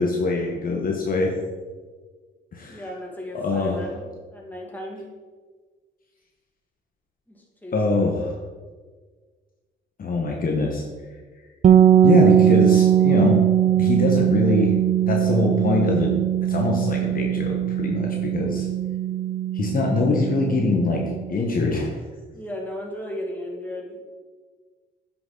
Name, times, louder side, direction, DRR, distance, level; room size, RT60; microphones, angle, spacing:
voice 1, 0.0-1.3 2.5-2.9 3.3-3.8 7.7-8.3 10.0-10.8 12.0-13.4 13.8-14.7 15.1-16.1 16.5-18.7 19.5-21.0 21.3-22.0, left 3 dB, 45° left, 0 dB, 1.3 m, -23 dB
voice 2, 2.7-4.0 4.3-5.0 7.3-8.1 22.3-24.2, left 1 dB, 10° left, -2 dB, 2.2 m, -35 dB
sound 1, 11.6-21.4, right 10 dB, 40° right, 0.4 m, -20 dB
9.4 x 6.1 x 4.0 m, 1.5 s
cardioid pair, 90°, 20 cm